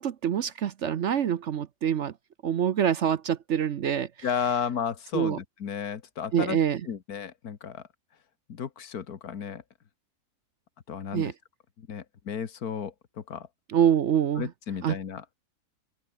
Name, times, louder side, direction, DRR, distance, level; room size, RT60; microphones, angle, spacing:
voice 1, 0.0-2.1 2.4-4.1 5.1-5.4 6.3-6.8 11.1-11.3 13.7-14.5 14.8-15.0, right 9 dB, 55° right, 0.9 m, -25 dB
voice 2, 4.2-6.6 6.9-7.8 8.5-9.6 10.9-11.3 11.8-13.5 14.4-15.2, left 7 dB, 75° left, 1.9 m, -33 dB
omnidirectional pair, 1.6 m